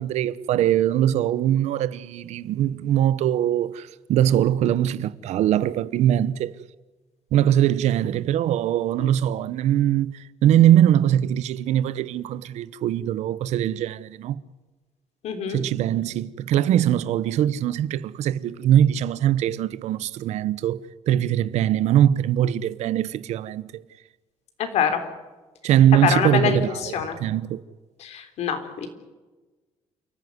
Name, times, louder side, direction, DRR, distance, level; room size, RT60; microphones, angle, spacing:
voice 1, 0.0-6.5 7.3-10.1 10.4-14.4 15.5-23.8 25.6-27.6, right 11 dB, 80° right, 0.9 m, -21 dB
voice 2, 15.2-15.6 24.6-25.0 25.9-27.2 28.0-28.9, left 7 dB, 70° left, 3.7 m, -25 dB
29.0 x 14.5 x 9.6 m
cardioid pair, 160°, 11 cm